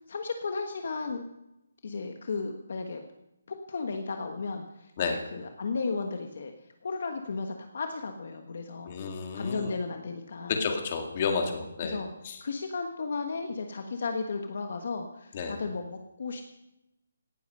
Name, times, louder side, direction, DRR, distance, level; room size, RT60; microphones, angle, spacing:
voice 1, 0.1-1.2 1.8-3.0 3.5-6.5 6.8-9.0 9.3-10.6 11.4-11.6 11.8-12.1 12.4-16.4, left 4 dB, 45° left, 5 dB, 1.3 m, -34 dB
voice 2, 8.9-9.7 10.5-12.0 12.2-12.4 15.3-15.5, left 5 dB, 25° left, 4 dB, 2.0 m, -31 dB
17.5 x 13.0 x 5.6 m, 0.93 s
hypercardioid pair, 175°, 0 cm